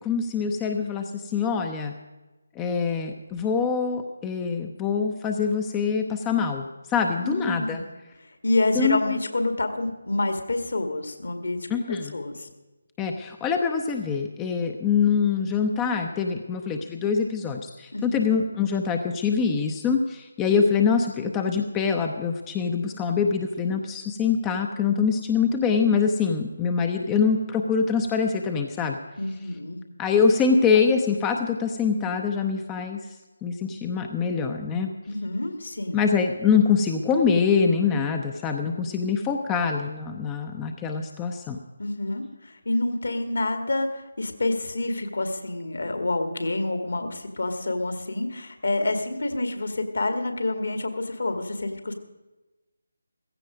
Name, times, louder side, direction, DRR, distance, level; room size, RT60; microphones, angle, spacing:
voice 1, 0.0-1.9 2.5-7.8 8.7-9.2 11.7-12.1 13.0-29.0 30.0-34.9 35.9-41.6, left 5 dB, 10° left, 5 dB, 0.7 m, -24 dB
voice 2, 7.2-7.9 8.2-11.6 11.9-12.5 17.9-18.3 29.2-29.8 35.1-36.0 41.8-51.9, left 2 dB, 60° left, 6 dB, 2.1 m, -28 dB
16.0 x 15.0 x 5.2 m, 1.1 s
figure-of-eight pair, 155°, 0 cm